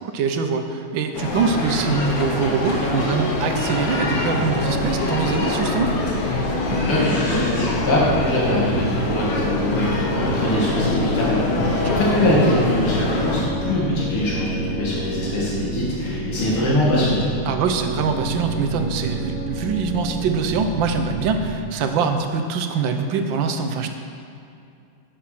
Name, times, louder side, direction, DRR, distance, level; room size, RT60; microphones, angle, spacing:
voice 1, 0.0-6.0 11.8-12.0 17.4-23.9, right 5 dB, 70° right, 6 dB, 1.5 m, -23 dB
sound 1, 1.1-13.4, left 2 dB, 50° left, 1.6 m, -24 dB
sound 2, 3.9-20.5, left 1 dB, 20° right, 2.2 m, -33 dB
sound 3, 4.6-21.6, right 4 dB, 45° right, 3.1 m, -31 dB
voice 2, 6.8-17.2, left 1 dB, 85° left, -7 dB, 3.1 m, -23 dB
11.0 x 7.4 x 5.9 m, 2.5 s
omnidirectional pair, 2.3 m